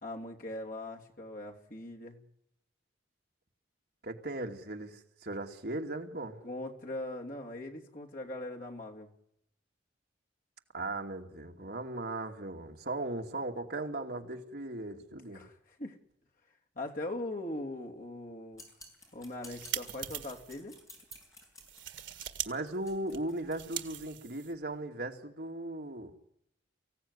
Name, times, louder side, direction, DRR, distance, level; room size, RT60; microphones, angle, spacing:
voice 1, 0.0-2.2 6.4-9.1 15.3-16.0 16.7-18.6 19.1-20.8, left 1 dB, 45° left, 1 dB, 3.0 m, -40 dB
voice 2, 4.0-6.4 10.7-15.4 22.5-26.1, right 2 dB, 55° right, 3 dB, 2.5 m, -38 dB
sound 1, 18.5-23.6, left 1 dB, 20° left, 6.4 m, -54 dB
sound 2, 19.2-20.6 21.0-21.2 21.6-22.5 22.7-24.7, right 11 dB, 75° right, 1.8 m, -41 dB
24.5 x 16.5 x 9.8 m, 0.79 s
head